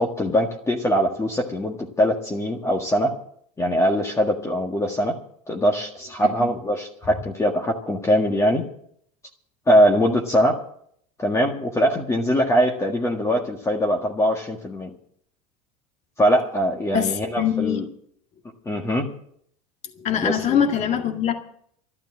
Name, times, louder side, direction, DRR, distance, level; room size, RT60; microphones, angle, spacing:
voice 1, 0.0-3.1 3.6-5.2 5.5-8.6 9.7-10.6 11.2-14.9 16.2-17.8 18.7-19.1 20.2-20.6, equal, 15° left, 1 dB, 1.7 m, -22 dB
voice 2, 6.2-6.5 16.9-17.9 20.0-21.3, left 8 dB, 40° left, 5 dB, 2.0 m, -23 dB
12.0 x 12.0 x 7.4 m, 0.66 s
supercardioid pair, 105°, 18 cm